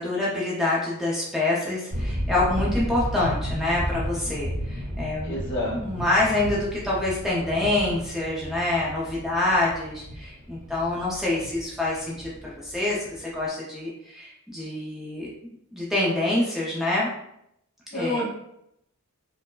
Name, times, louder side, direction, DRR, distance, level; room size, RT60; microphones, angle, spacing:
voice 1, 0.0-5.4 5.7-15.3 15.7-17.1 17.9-18.2, left 2 dB, ahead, -6 dB, 0.5 m, -26 dB
sound 1, 1.9-13.4, equal, 30° right, 0.8 m, -33 dB
voice 2, 5.2-5.8 17.9-18.3, left 1 dB, 55° left, -4 dB, 1.0 m, -28 dB
4.3 x 2.1 x 2.3 m, 0.77 s
head